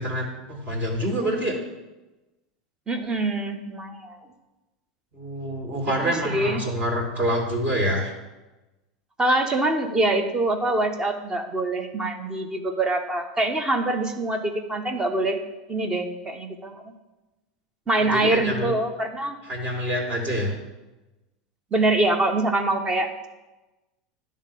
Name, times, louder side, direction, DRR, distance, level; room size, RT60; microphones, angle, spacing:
voice 1, 0.0-1.5 5.1-8.1 18.0-18.7 19.5-20.5, equal, 40° right, 0 dB, 2.4 m, -26 dB
voice 2, 2.9-4.2 6.0-6.7 9.2-15.4 15.7-16.8 17.9-19.4 21.7-23.3, right 2 dB, 20° right, 7 dB, 1.1 m, -24 dB
10.5 x 3.8 x 6.8 m, 1.1 s
hypercardioid pair, 110°, 4 cm